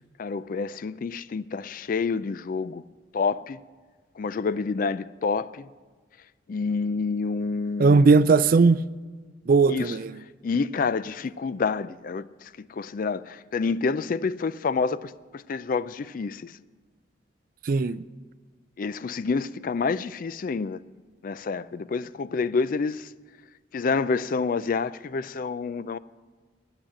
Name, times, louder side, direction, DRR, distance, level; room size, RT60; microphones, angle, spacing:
voice 1, 0.2-2.8 3.1-3.6 4.2-5.7 6.5-8.1 9.7-9.9 10.4-16.6 18.8-20.8 21.2-23.1 23.7-26.0, left 4 dB, 45° left, 0.3 m, -28 dB
voice 2, 7.8-8.8 9.5-10.2 17.6-18.0, right 4 dB, 50° right, 0.4 m, -18 dB
10.0 x 9.0 x 9.7 m
head